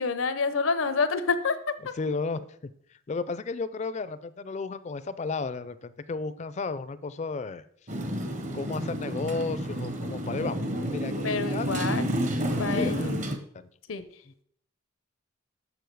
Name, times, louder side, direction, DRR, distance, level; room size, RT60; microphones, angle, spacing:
voice 1, 0.0-1.6 1.8-1.9 11.2-12.2 12.6-13.2 13.9-14.1, left 4 dB, 85° left, 12 dB, 0.7 m, -28 dB
voice 2, 2.0-2.7 3.1-7.6 8.5-10.6 10.9-11.7 12.7-13.1, left 4 dB, 35° left, 14 dB, 0.4 m, -33 dB
Motorcycle, 7.9-13.4, equal, 40° right, 0.8 m, -30 dB
6.9 x 6.7 x 4.6 m, 0.66 s
head